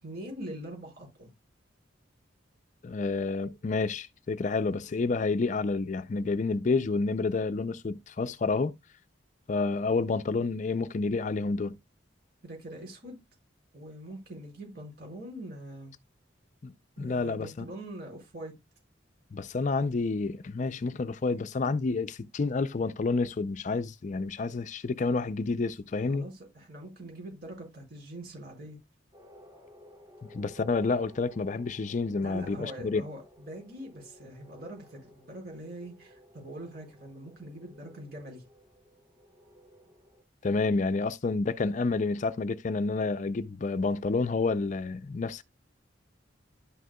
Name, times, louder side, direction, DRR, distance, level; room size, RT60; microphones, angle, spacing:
voice 1, 0.0-1.3 12.4-13.2 13.7-15.9 17.0-18.5 26.1-28.8 32.2-38.4, right 1 dB, 55° right, 4.7 m, -43 dB
voice 2, 2.8-8.8 9.5-11.8 16.6-17.7 19.3-26.3 30.3-33.0 40.4-45.4, left 3 dB, 40° left, 0.4 m, -29 dB
sound 1, 29.1-40.2, left 1 dB, 20° right, 2.5 m, -56 dB
11.5 x 6.4 x 2.2 m
head